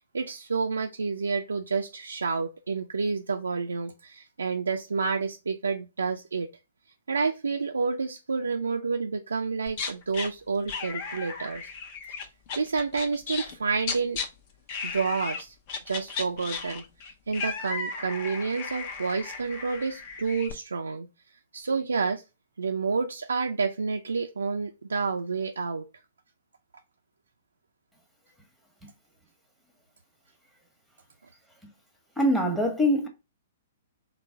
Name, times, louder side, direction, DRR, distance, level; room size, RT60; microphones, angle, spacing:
voice 1, 0.1-6.5 7.1-11.7 12.6-14.2 14.8-15.5 15.9-21.1 21.5-22.2 22.6-25.9, right 4 dB, 80° right, 0.3 m, -29 dB
sound 1, 9.7-10.3 10.7-13.6 13.8-14.3 14.7-15.4 15.7-20.5, left 5 dB, 45° left, 0.6 m, -35 dB
voice 2, 32.2-33.1, equal, 5° left, 1.0 m, -23 dB
3.9 x 2.1 x 3.6 m
hypercardioid pair, 120°, 0 cm